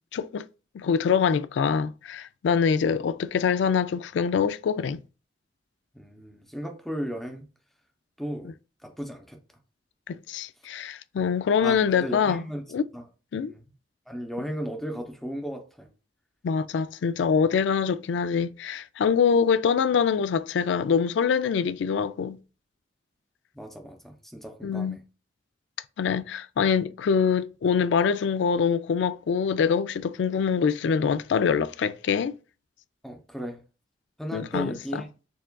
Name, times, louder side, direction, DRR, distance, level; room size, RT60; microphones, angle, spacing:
voice 1, 0.1-0.4 0.7-5.0 10.1-12.4 12.7-12.8 13.3-13.5 16.4-22.4 24.6-25.0 26.0-32.4 34.3-35.0, left 6 dB, 75° left, 0.3 m, -24 dB
voice 2, 5.9-7.5 8.2-8.5 8.8-9.4 11.6-12.6 12.9-13.0 13.5-13.6 14.1-15.9 23.5-25.0 33.0-33.6 34.2-35.1, equal, ahead, 0.6 m, -35 dB
6.8 x 2.4 x 2.2 m
head